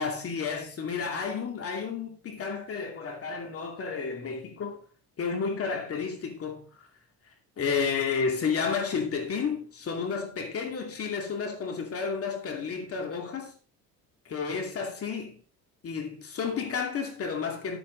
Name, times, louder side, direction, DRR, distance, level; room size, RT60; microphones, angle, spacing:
voice 1, 0.0-4.8 5.2-6.9 7.6-13.5 14.3-15.4 15.8-17.8, left 5 dB, 40° left, 2.4 m, -31 dB
12.0 x 8.7 x 3.8 m
cardioid pair, 125°, 35 cm